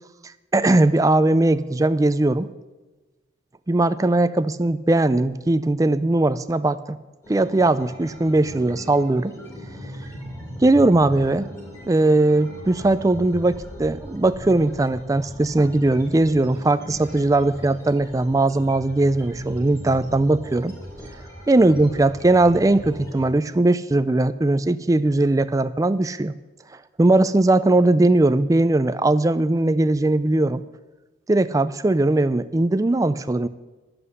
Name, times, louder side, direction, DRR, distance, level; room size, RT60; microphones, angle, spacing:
voice 1, 0.5-2.5 3.7-7.0 7.3-9.3 10.6-11.5 11.9-20.8 21.5-26.3 27.0-30.6 31.3-33.5, right 2 dB, 20° right, 13 dB, 0.4 m, -19 dB
sound 1, 7.2-23.2, equal, 15° left, 2.8 m, -39 dB
11.5 x 7.9 x 8.1 m, 1.2 s
head